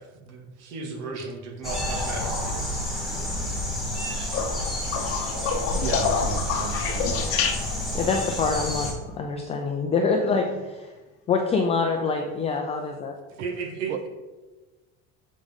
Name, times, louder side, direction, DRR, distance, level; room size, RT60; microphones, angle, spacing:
voice 1, 0.0-2.9 13.4-13.9, right 4 dB, 90° right, 1 dB, 2.0 m, -35 dB
sound 1, 1.6-8.9, left 1 dB, ahead, 1.5 m, -29 dB
voice 2, 4.0-4.3 5.7-7.2 13.9-14.1, right 8 dB, 40° right, 9 dB, 0.6 m, -34 dB
sound 2, 4.3-8.0 10.2-10.7 12.3-12.4, left 6 dB, 40° left, 0.8 m, -28 dB
voice 3, 7.9-10.9 11.3-13.1, left 4 dB, 20° left, 3 dB, 0.4 m, -25 dB
8.0 x 5.0 x 3.7 m, 1.2 s
cardioid pair, 160°, 33 cm